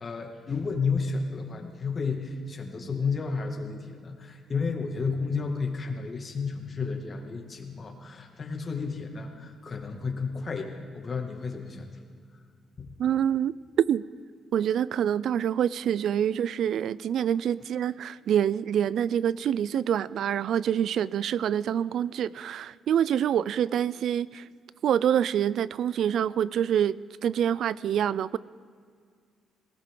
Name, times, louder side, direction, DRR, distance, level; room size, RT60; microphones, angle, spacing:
voice 1, 0.0-12.0 12.8-12.9, left 4 dB, 40° left, 3 dB, 2.2 m, -32 dB
voice 2, 13.0-14.0 14.5-24.5 24.8-28.4, right 9 dB, 70° right, 19 dB, 0.4 m, -26 dB
19.0 x 18.0 x 3.8 m, 2.1 s
cardioid pair, 90°, 0 cm